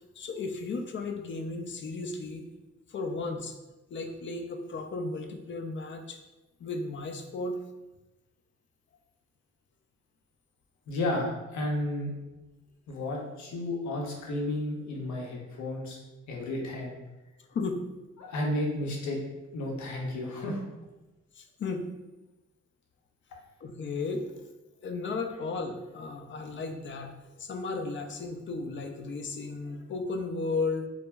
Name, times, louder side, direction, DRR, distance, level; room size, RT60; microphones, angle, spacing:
voice 1, 0.2-2.5 2.9-3.6 3.9-6.2 6.6-7.6 17.5-17.8 21.3-21.9 23.6-24.3 24.8-30.9, left 3 dB, 40° left, 5 dB, 0.4 m, -34 dB
voice 2, 10.9-12.1 12.9-16.0 16.3-17.0 18.2-19.2 19.5-20.6, left 1 dB, 70° left, -1 dB, 0.7 m, -32 dB
2.1 x 2.0 x 3.3 m, 1.1 s
supercardioid pair, 50°, 30 cm